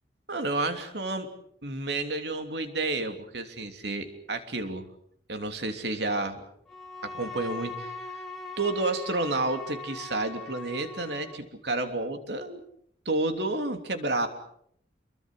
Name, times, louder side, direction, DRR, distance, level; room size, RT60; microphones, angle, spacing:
voice 1, 0.3-1.3 1.6-4.9 5.3-6.4 7.0-7.9 8.6-12.6 13.0-14.3, right 2 dB, 70° right, 6 dB, 3.1 m, -30 dB
Bowed string instrument, 6.7-11.5, left 3 dB, ahead, 3.3 m, -40 dB
27.5 x 23.0 x 6.4 m, 0.69 s
head